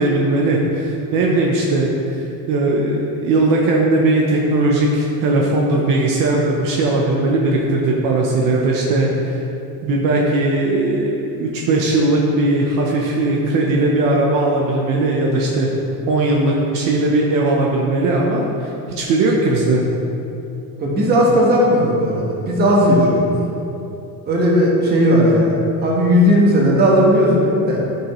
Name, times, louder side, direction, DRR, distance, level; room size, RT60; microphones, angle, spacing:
voice 1, 0.0-9.4 9.8-15.7 16.1-19.8, right 2 dB, 55° right, -2 dB, 0.9 m, -18 dB
voice 2, 20.8-23.3 24.2-25.5 25.8-27.8, equal, 25° right, -3 dB, 1.3 m, -15 dB
12.5 x 5.6 x 3.1 m, 2.8 s
cardioid pair, 180°, 40 cm